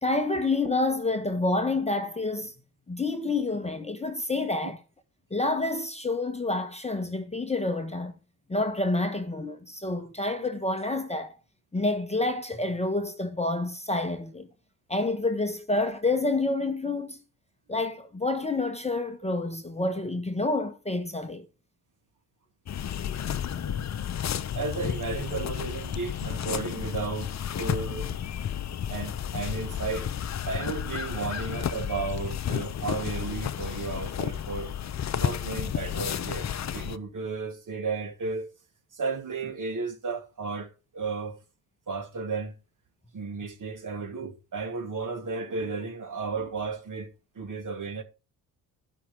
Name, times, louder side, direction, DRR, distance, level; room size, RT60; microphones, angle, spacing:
voice 1, 0.0-2.5 2.9-4.8 5.3-8.2 8.5-11.4 11.7-14.5 14.9-17.2 17.7-21.4 23.5-23.6, left 2 dB, 15° left, 1.2 m, -28 dB
sound 1, 22.7-37.0, left 9 dB, 40° left, 0.7 m, -32 dB
voice 2, 23.6-23.9 24.5-27.3 27.6-28.1 28.9-30.1 30.5-34.7 35.1-38.5 38.9-41.4 41.9-42.6 43.1-47.1 47.3-48.0, right 4 dB, 40° right, 2.6 m, -34 dB
12.0 x 5.8 x 5.0 m
hypercardioid pair, 45°, 45 cm